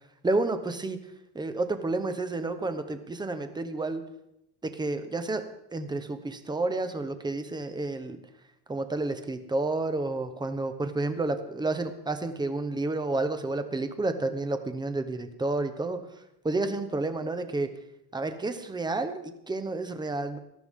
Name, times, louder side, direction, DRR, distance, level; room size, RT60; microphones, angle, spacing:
voice 1, 0.2-1.0 1.3-4.0 4.6-8.2 8.7-16.0 16.4-17.7 18.1-20.4, right 2 dB, 10° right, 8 dB, 1.0 m, -30 dB
19.0 x 14.0 x 3.7 m, 0.82 s
cardioid pair, 160°, 42 cm